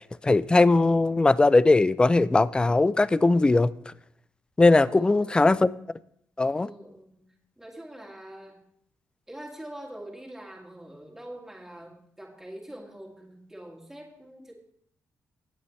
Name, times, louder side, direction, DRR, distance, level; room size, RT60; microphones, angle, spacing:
voice 1, 0.2-3.7 4.6-5.7 6.4-6.7, left 2 dB, 15° left, 0.3 m, -20 dB
voice 2, 4.8-5.5 6.5-7.2 7.6-8.6 9.3-14.5, right 1 dB, 5° right, 2.3 m, -44 dB
18.0 x 7.0 x 3.2 m
cardioid pair, 120°, 6 cm